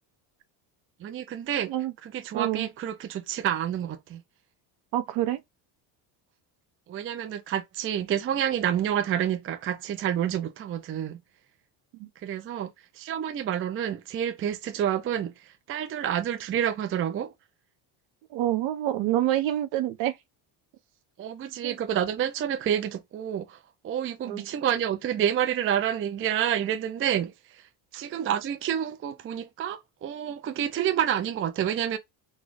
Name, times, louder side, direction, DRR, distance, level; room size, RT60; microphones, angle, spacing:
voice 1, 1.0-1.7 2.0-4.2 6.9-11.2 12.2-17.3 21.2-27.7 27.9-32.0, right 10 dB, 30° right, 0.4 m, -29 dB
voice 2, 2.3-2.7 4.9-5.4 12.0-12.1 18.3-20.1 21.6-21.7 24.3-24.5, right 13 dB, 70° right, 1.0 m, -27 dB
4.1 x 2.3 x 3.1 m
cardioid pair, 130°, 47 cm